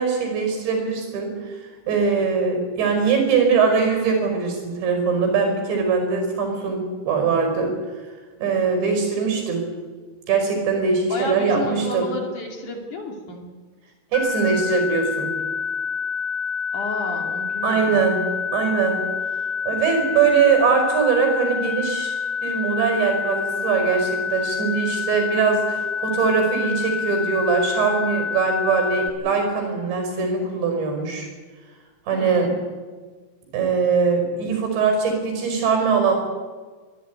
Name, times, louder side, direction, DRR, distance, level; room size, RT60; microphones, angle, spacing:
voice 1, 0.0-1.4 1.9-7.7 8.4-9.7 10.3-12.1 14.1-15.3 17.6-18.2 18.5-19.0 19.7-22.1 22.4-31.3 32.1-32.5 33.5-36.1, right 5 dB, 75° right, 4 dB, 7.4 m, -21 dB
voice 2, 11.1-13.5 16.7-18.0 32.2-32.6, left 2 dB, 50° left, 2 dB, 3.6 m, -31 dB
sound 1, 14.1-29.1, left 7 dB, 75° left, 1.0 m, -27 dB
24.5 x 15.0 x 9.5 m, 1.4 s
omnidirectional pair, 5.1 m